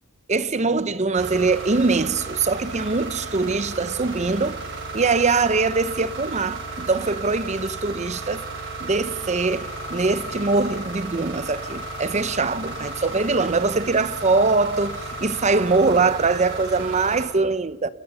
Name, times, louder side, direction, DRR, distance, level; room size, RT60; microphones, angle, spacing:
voice 1, 0.3-4.7 4.9-8.5 8.8-17.9, right 3 dB, 35° right, 0.8 m, -22 dB
sound 1, 1.2-17.3, right 2 dB, 65° right, 5.1 m, -34 dB
29.5 x 27.5 x 5.6 m
head